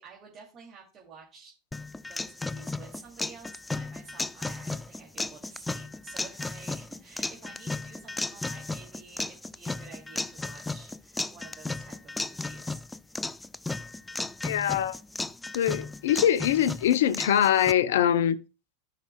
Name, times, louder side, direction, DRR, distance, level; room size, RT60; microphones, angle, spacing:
voice 1, 0.0-1.6 2.0-12.8 13.1-13.3, right 5 dB, 35° right, 2.4 m, -50 dB
sound 1, 1.7-17.7, left 2 dB, 10° left, 0.3 m, -35 dB
voice 2, 14.4-15.0 15.5-18.4, left 10 dB, 70° left, 0.6 m, -23 dB
14.5 x 5.8 x 2.2 m
hypercardioid pair, 90°, 0 cm